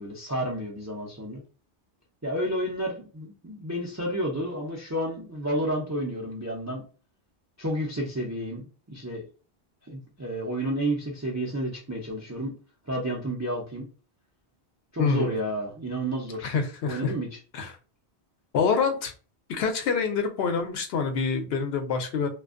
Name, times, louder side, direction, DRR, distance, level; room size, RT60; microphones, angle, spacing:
voice 1, 0.0-1.4 2.2-6.8 7.6-9.2 9.8-12.6 12.9-13.9 14.9-16.5 16.8-17.3, right 1 dB, 25° right, -2 dB, 0.3 m, -31 dB
voice 2, 15.0-15.3 16.4-17.1 17.5-17.7 18.5-19.1 19.5-22.3, left 5 dB, 70° left, 5 dB, 0.8 m, -26 dB
2.5 x 2.2 x 2.4 m, 0.37 s
omnidirectional pair, 1.1 m